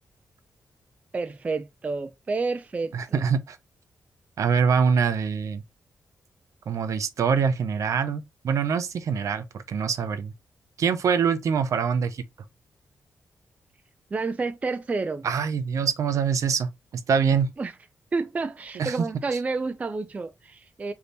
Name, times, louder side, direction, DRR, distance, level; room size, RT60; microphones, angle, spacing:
voice 1, 1.1-3.2 14.1-15.3 17.6-17.7 18.1-20.9, right 3 dB, 25° right, 0.3 m, -30 dB
voice 2, 2.9-3.6 4.4-5.6 6.7-10.3 10.8-12.2 15.2-16.7 17.1-17.5 18.8-19.0, right 6 dB, 70° right, 0.6 m, -24 dB
3.4 x 2.8 x 4.0 m
wide cardioid pair, 150°, 6 cm